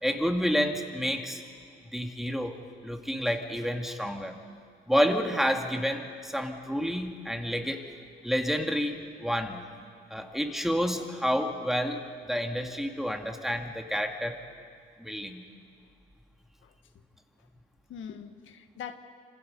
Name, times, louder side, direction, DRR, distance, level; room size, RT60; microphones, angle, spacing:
voice 1, 0.0-1.4 1.9-2.5 2.8-4.4 4.9-7.9 8.2-9.6 10.1-14.4 15.0-15.4, equal, ahead, 4 dB, 2.1 m, -29 dB
voice 2, 10.0-10.4 16.6-16.8 17.4-17.5 17.9-19.0, left 8 dB, 75° left, 7 dB, 1.5 m, -43 dB
27.5 x 26.0 x 5.4 m, 2.2 s
cardioid pair, 90°, 20 cm